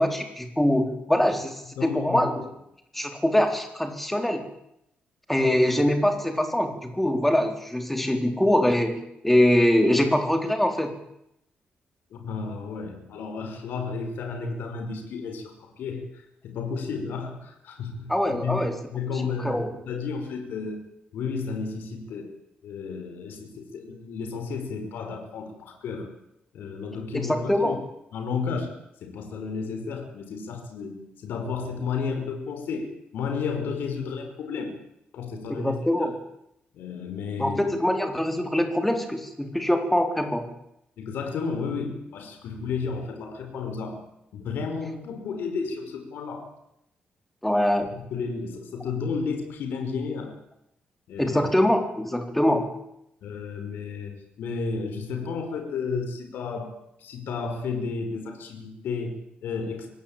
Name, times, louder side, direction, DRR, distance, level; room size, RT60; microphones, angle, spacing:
voice 1, 0.0-2.4 2.9-4.4 5.3-10.9 18.1-18.7 19.4-19.7 27.1-27.8 35.5-36.1 37.4-40.5 47.4-47.9 51.2-52.7, left 1 dB, 5° left, 6 dB, 4.0 m, -23 dB
voice 2, 1.8-2.4 5.4-5.8 12.1-20.8 21.1-22.3 22.6-26.1 26.5-27.8 28.1-34.8 35.1-36.1 36.7-37.6 41.0-44.1 44.3-46.5 47.9-50.3 51.1-51.4 53.2-59.9, left 5 dB, 85° left, 5 dB, 5.3 m, -32 dB
25.0 x 18.0 x 8.9 m, 0.80 s
cardioid pair, 130°, 3 cm